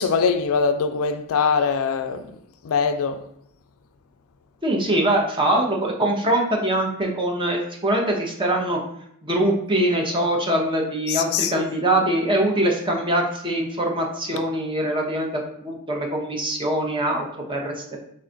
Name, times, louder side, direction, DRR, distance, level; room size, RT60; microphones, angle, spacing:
voice 1, 0.0-2.2 2.6-3.2 11.1-11.6, left 5 dB, 65° left, 0.4 m, -22 dB
voice 2, 4.6-8.8 9.2-15.3 15.6-18.0, right 1 dB, 20° right, 0.7 m, -23 dB
4.2 x 2.3 x 3.8 m
head